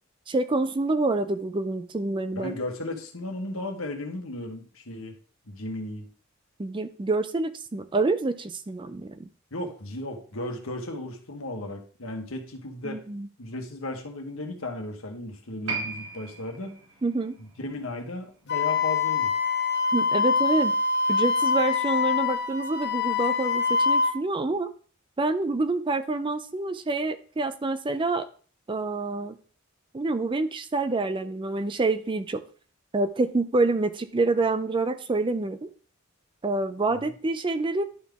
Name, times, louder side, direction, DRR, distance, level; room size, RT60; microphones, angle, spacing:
voice 1, 0.3-2.5 6.6-9.3 12.8-13.3 17.0-17.4 19.9-20.7 21.1-24.7 25.2-28.3 28.7-29.4 29.9-32.4 32.9-35.7 36.4-37.8, right 3 dB, 25° right, 10 dB, 0.4 m, -27 dB
voice 2, 2.3-5.2 5.5-6.1 9.5-13.0 13.4-16.7 17.4-19.3 37.0-37.1, left 1 dB, 75° left, 4 dB, 1.3 m, -35 dB
Piano, 15.7-22.6 22.9-23.0, right 3 dB, 70° right, 2.2 m, -41 dB
Wind instrument woodwind instrument, 18.5-24.1, left 5 dB, 50° left, 1.0 m, -24 dB
11.0 x 3.8 x 3.5 m, 0.42 s
head